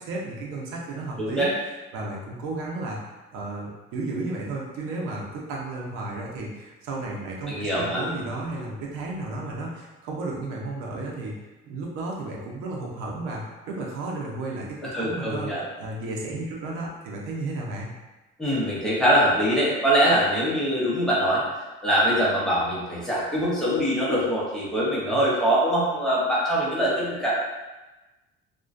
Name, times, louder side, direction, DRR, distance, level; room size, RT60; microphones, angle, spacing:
voice 1, 0.0-1.5 1.9-11.3 11.7-15.5 15.8-17.9, right 2 dB, 85° right, -2 dB, 0.6 m, -33 dB
voice 2, 1.2-1.5 7.5-8.0 14.8-15.6 18.4-21.4 21.8-27.3, equal, 5° left, -8 dB, 0.6 m, -23 dB
2.4 x 2.1 x 2.4 m, 1.1 s
cardioid pair, 145°, 21 cm